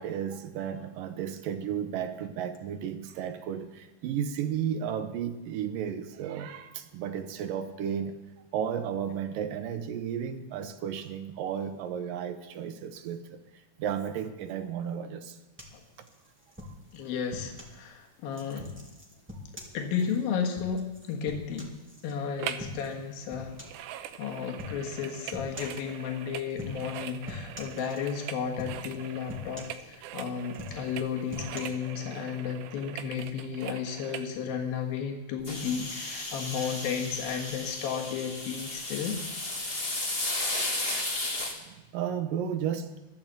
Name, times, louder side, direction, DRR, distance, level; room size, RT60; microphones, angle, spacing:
voice 1, 0.0-8.2 8.5-13.4 13.8-15.4 32.1-32.4 32.8-33.2 41.7-43.0, right 8 dB, 75° right, 8 dB, 2.5 m, -33 dB
sound 1, 15.6-17.8 18.3-22.1 22.6-23.0 23.3-23.9 24.6-24.8 25.3-25.8 26.5-27.0 27.3-28.2 28.6-29.0 29.3-30.1 30.5-31.6, left 2 dB, 5° right, 1.6 m, -43 dB
voice 2, 16.9-18.7 19.7-21.7 22.0-23.5 24.2-39.2, left 7 dB, 80° left, 1 dB, 3.4 m, -33 dB
sound 2, 22.4-22.8 23.0-34.3 34.8-34.9, right 11 dB, 90° right, 2.6 m, -42 dB
sound 3, 35.4-41.5, left 2 dB, 25° left, 1.2 m, -34 dB
13.5 x 12.5 x 7.5 m, 1.1 s
omnidirectional pair, 4.2 m